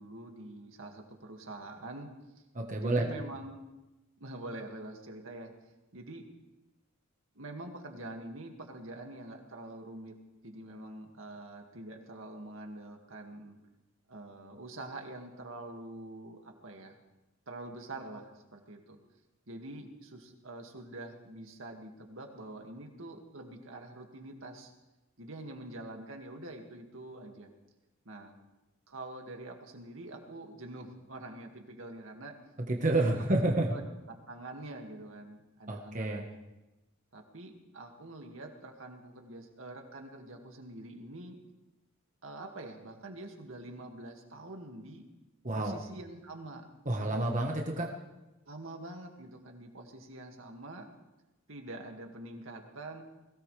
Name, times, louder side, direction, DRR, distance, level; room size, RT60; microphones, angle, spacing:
voice 1, 0.0-2.1 2.8-3.6 4.2-5.5 5.9-6.2 7.4-10.1 10.4-13.6 14.1-17.0 17.5-19.0 19.5-24.7 25.2-27.5 28.1-28.4 28.9-32.3 32.8-33.1 33.7-33.9 34.3-36.4 37.1-41.4 42.2-45.0 45.5-46.7 46.9-47.3 48.5-50.9 51.5-53.0, right 2 dB, 70° right, 3 dB, 2.1 m, -45 dB
voice 2, 2.5-3.2 32.7-33.7 35.7-36.2 45.4-45.8 46.8-47.9, right 2 dB, 35° right, 1 dB, 1.3 m, -29 dB
21.0 x 17.5 x 3.4 m, 1.0 s
head